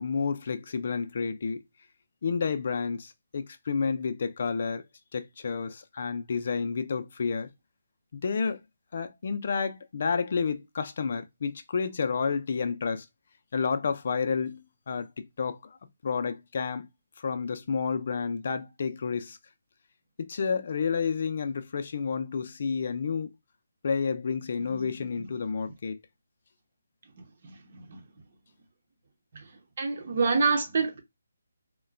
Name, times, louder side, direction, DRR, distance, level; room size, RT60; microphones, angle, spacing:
voice 1, 0.0-1.6 2.2-4.8 5.1-7.5 8.1-8.6 8.9-13.1 13.5-15.8 16.0-16.9 17.2-19.4 20.2-23.3 23.8-26.0, left 5 dB, 50° left, 0.5 m, -30 dB
voice 2, 27.4-28.0 29.8-31.0, right 4 dB, 45° right, 0.9 m, -27 dB
3.7 x 2.2 x 2.2 m
hypercardioid pair, 165°, 0 cm